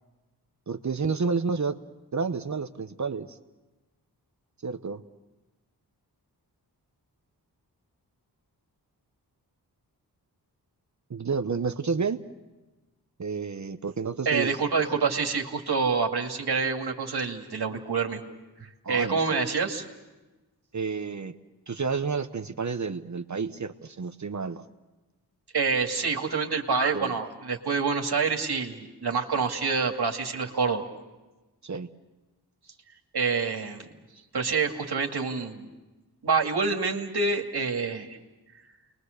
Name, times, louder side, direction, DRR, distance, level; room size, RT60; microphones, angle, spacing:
voice 1, 0.7-1.8 2.1-3.4 4.6-5.0 11.1-12.2 13.2-14.5 18.8-19.4 20.7-21.4 21.7-24.6 26.9-27.1 31.6-31.9, right 5 dB, 45° right, 9 dB, 1.0 m, -30 dB
voice 2, 14.3-18.2 18.9-19.8 25.5-30.9 33.1-33.9 34.3-35.7 36.2-38.2, right 5 dB, 70° right, 2 dB, 2.3 m, -27 dB
29.5 x 22.0 x 6.6 m, 1.1 s
cardioid pair, 55°, 40 cm